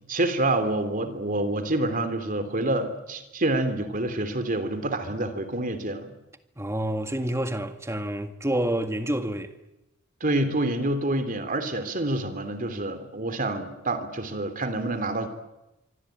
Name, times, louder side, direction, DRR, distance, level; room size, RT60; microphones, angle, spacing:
voice 1, 0.1-6.1 10.2-15.3, right 2 dB, 45° right, 3.1 m, -27 dB
voice 2, 6.6-9.5, right 1 dB, 15° right, 1.8 m, -28 dB
25.0 x 25.0 x 9.2 m
head